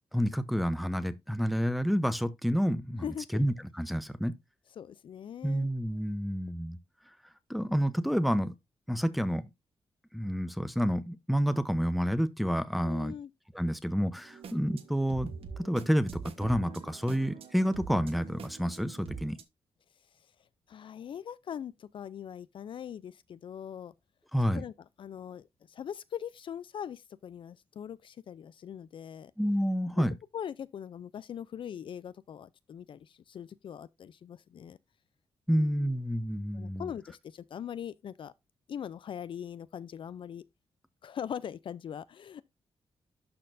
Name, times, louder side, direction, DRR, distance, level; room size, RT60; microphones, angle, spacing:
voice 1, 0.1-3.1 3.3-4.3 5.4-6.8 7.5-8.5 8.9-9.5 10.1-13.1 13.5-15.3 15.6-19.4 24.3-24.6 29.4-30.1 35.5-36.9, equal, ahead, 0.7 m, -29 dB
voice 2, 3.0-3.4 4.8-5.7 12.8-13.3 20.7-23.9 24.5-24.7 25.0-29.3 30.3-34.8 35.5-35.9 36.5-38.3 38.7-40.4 41.0-42.4, left 9 dB, 60° left, 0.4 m, -41 dB
sound 1, 14.3-19.4, right 5 dB, 75° right, 1.1 m, -44 dB
12.0 x 4.3 x 2.5 m
wide cardioid pair, 110°, 10 cm